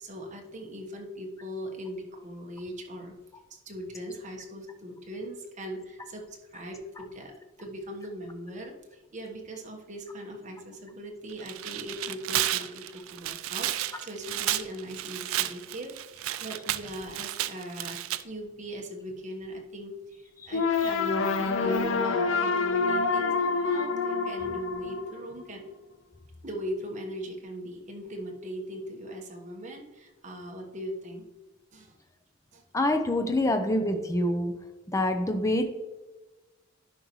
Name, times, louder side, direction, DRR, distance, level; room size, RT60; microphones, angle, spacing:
voice 1, 0.0-3.2 3.5-7.3 7.6-25.6 26.4-31.2 31.7-32.0 32.5-32.6, equal, 35° right, 1 dB, 1.3 m, -39 dB
Tearing, 11.3-18.2, right 13 dB, 90° right, 0.4 m, -32 dB
sound 1, 20.5-25.5, left 4 dB, 70° left, 0.5 m, -27 dB
voice 2, 32.7-34.5 34.9-35.6, left 1 dB, 15° left, 6 dB, 0.6 m, -26 dB
11.0 x 5.3 x 3.1 m, 1.1 s
head